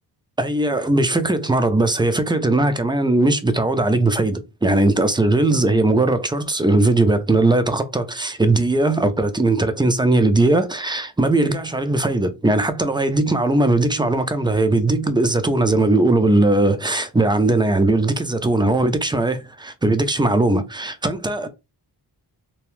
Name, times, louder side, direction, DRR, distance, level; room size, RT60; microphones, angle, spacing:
voice 1, 0.4-21.5, right 2 dB, 10° right, 0.5 m, -19 dB
2.8 x 2.0 x 3.1 m
cardioid pair, 50°, 45 cm